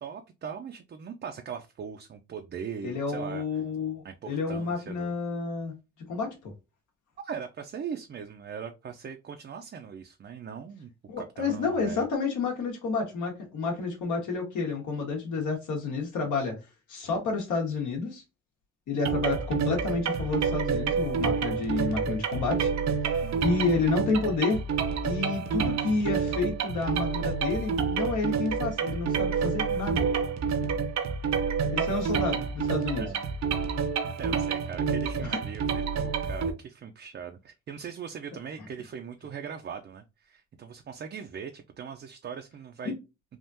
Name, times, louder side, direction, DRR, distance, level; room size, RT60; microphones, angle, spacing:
voice 1, 0.0-3.4 4.0-5.1 7.2-10.9 11.2-12.1 23.2-23.6 31.6-31.7 32.0-32.3 33.0-33.2 34.2-42.9, right 7 dB, 35° right, 0.5 m, -40 dB
voice 2, 2.8-5.7 6.1-6.5 11.1-16.6 16.9-18.2 18.9-22.7 23.4-24.6 25.0-30.0 31.7-33.0 34.8-34.9 35.3-35.4 42.8-42.9, left 4 dB, 75° left, 1.6 m, -30 dB
sound 1, 19.0-36.5, right 6 dB, 65° right, 0.8 m, -28 dB
3.6 x 2.5 x 2.7 m
cardioid pair, 90°, 30 cm